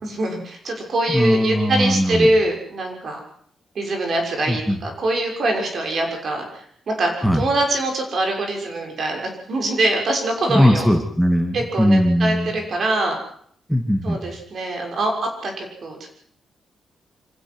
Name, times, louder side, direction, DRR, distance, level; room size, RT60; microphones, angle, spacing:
voice 1, 0.0-3.2 3.7-10.9 11.5-13.2 14.0-16.0, right 2 dB, 55° right, 2 dB, 6.3 m, -23 dB
voice 2, 1.1-2.3 4.5-4.8 7.2-7.4 10.5-12.5 13.7-14.2, equal, ahead, 4 dB, 2.4 m, -19 dB
25.5 x 16.0 x 6.3 m, 0.63 s
cardioid pair, 115°, 0 cm